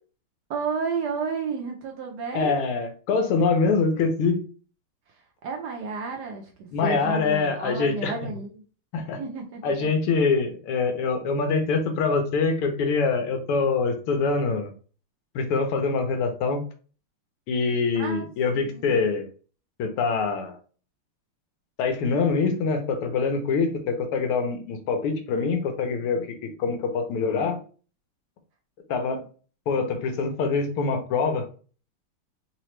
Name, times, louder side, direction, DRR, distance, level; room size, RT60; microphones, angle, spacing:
voice 1, 0.5-2.6 5.4-8.6 9.2-9.9 17.9-18.3 18.5-19.0, right 5 dB, 70° right, 2 dB, 1.0 m, -32 dB
voice 2, 2.3-4.5 6.7-8.1 8.9-9.2 9.6-14.7 15.4-16.6 17.5-19.3 19.8-20.6 21.8-27.6 28.9-29.2 29.7-31.5, left 4 dB, 85° left, 6 dB, 1.7 m, -24 dB
4.0 x 2.9 x 3.1 m, 0.38 s
omnidirectional pair, 2.4 m